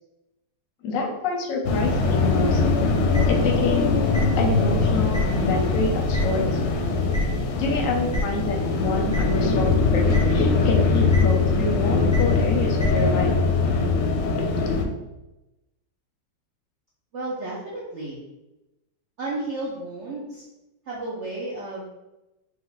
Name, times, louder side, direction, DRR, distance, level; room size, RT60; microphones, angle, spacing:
voice 1, 0.8-2.7 3.3-3.9 4.3-6.6 7.6-10.0 10.3-13.3, left 3 dB, 60° left, 1 dB, 0.9 m, -27 dB
sound 1, 1.6-14.8, left 3 dB, 85° left, 1.3 m, -22 dB
sound 2, 3.1-3.2 4.1-4.2 5.1-5.2 6.1-6.2 7.1-7.2 8.1-8.2 9.1-9.2 10.1-10.2 11.1-11.2 12.1-12.2 12.8-12.9, left 1 dB, 5° right, 1.0 m, -25 dB
voice 2, 17.1-18.2 19.2-20.4 20.8-21.9, right 2 dB, 55° right, -5 dB, 0.8 m, -32 dB
4.4 x 2.4 x 4.0 m, 0.99 s
omnidirectional pair, 1.9 m